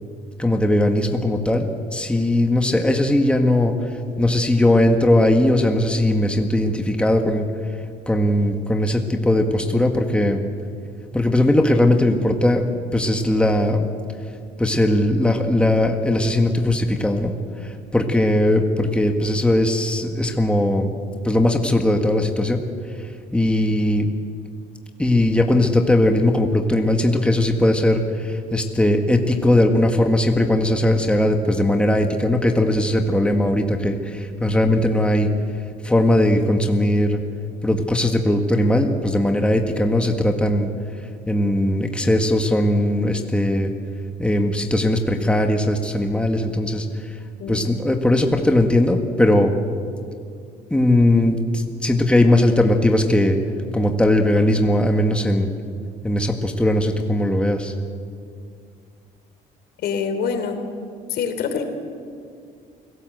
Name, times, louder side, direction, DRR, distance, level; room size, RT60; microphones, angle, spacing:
voice 1, 0.4-7.5 8.1-10.4 11.1-12.6 12.9-13.9 14.6-17.3 17.6-21.0 21.2-22.6 23.3-24.1 25.0-35.3 35.8-37.2 37.6-40.7 41.3-43.7 44.2-47.2 47.5-49.5 50.7-53.4 53.7-55.5 56.0-57.7, left 1 dB, 5° left, 4 dB, 1.8 m, -19 dB
voice 2, 59.8-60.6 61.1-61.6, left 6 dB, 70° left, 7 dB, 3.5 m, -25 dB
29.0 x 17.5 x 8.0 m, 2.2 s
cardioid pair, 110°, 17 cm